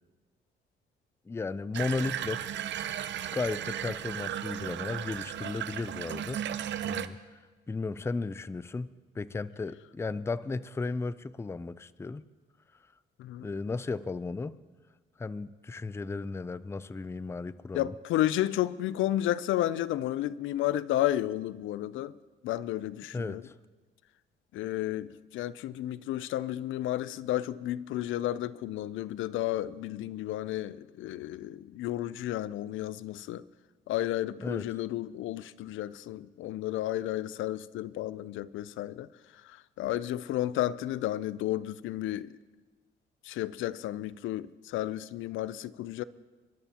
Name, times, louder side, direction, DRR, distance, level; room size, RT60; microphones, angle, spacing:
voice 1, 1.3-2.4 3.3-6.4 6.8-7.2 7.7-12.2 13.4-14.6 15.2-17.9 23.1-23.5 34.4-34.7, left 3 dB, 15° left, 0.4 m, -35 dB
Water tap faucet / Bathtub (filling or washing), 1.7-7.1, right 10 dB, 65° right, 0.7 m, -35 dB
voice 2, 17.7-22.1 22.4-23.4 24.5-33.4 33.9-39.1 39.4-42.3 43.2-46.0, left 13 dB, 80° left, 0.4 m, -32 dB
26.5 x 12.5 x 2.9 m
cardioid pair, 90°, 20 cm